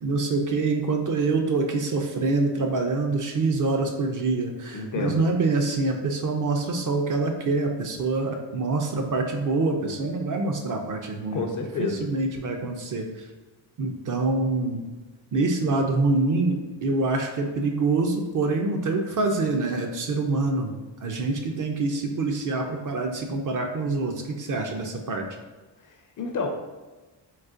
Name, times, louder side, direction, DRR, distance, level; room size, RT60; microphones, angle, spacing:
voice 1, 0.0-11.4 11.8-13.3 13.8-14.8 15.3-25.2, right 3 dB, 45° right, 3 dB, 0.4 m, -25 dB
voice 2, 4.7-5.2 11.3-12.0 25.8-26.5, left 4 dB, 45° left, 3 dB, 0.4 m, -30 dB
3.9 x 2.1 x 2.4 m, 1.2 s
cardioid pair, 80°, 48 cm